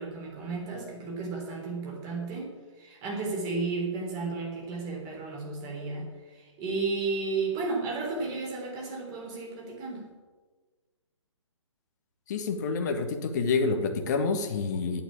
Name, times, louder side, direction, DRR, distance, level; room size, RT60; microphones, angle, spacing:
voice 1, 0.0-10.1, right 3 dB, 20° right, -1 dB, 3.5 m, -33 dB
voice 2, 12.3-15.0, left 4 dB, 35° left, 6 dB, 1.5 m, -28 dB
9.3 x 8.2 x 8.6 m, 1.4 s
figure-of-eight pair, 135°, 16 cm